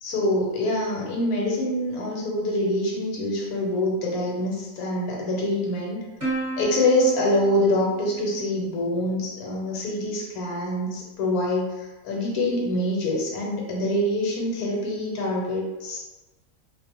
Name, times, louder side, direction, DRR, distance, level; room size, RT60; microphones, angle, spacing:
voice 1, 0.0-6.0 6.6-16.1, left 1 dB, 75° left, -2 dB, 1.1 m, -25 dB
Plucked string instrument, 6.2-8.9, right 2 dB, 25° right, 1.2 m, -33 dB
2.5 x 2.1 x 2.8 m, 1.2 s
omnidirectional pair, 1.6 m